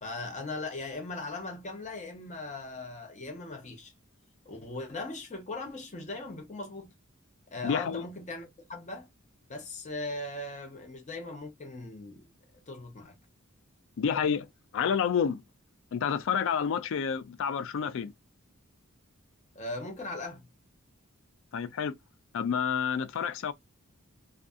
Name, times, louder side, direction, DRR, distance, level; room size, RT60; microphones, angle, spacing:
voice 1, 0.0-3.9 4.4-6.9 7.5-9.1 9.5-12.3 12.7-13.2 19.5-20.5, left 2 dB, 35° left, 0.8 m, -39 dB
voice 2, 7.6-8.0 14.0-14.5 14.7-15.4 15.9-18.1 21.5-22.0 22.3-23.5, left 7 dB, 65° left, 0.4 m, -29 dB
2.6 x 2.3 x 2.3 m
head